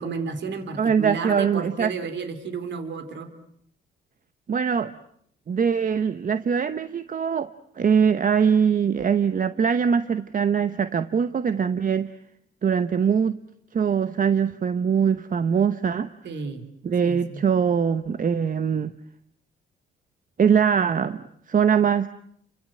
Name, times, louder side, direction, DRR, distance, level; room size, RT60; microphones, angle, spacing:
voice 1, 0.0-3.3 16.2-16.6 17.0-17.4, right 5 dB, 65° right, 8 dB, 3.9 m, -32 dB
voice 2, 0.8-1.9 4.5-4.9 5.5-7.5 7.8-12.1 12.6-13.4 13.7-16.1 16.8-18.9 20.4-22.1, right 7 dB, 45° right, 11 dB, 1.1 m, -22 dB
29.5 x 25.0 x 7.8 m, 0.70 s
cardioid pair, 90°, 20 cm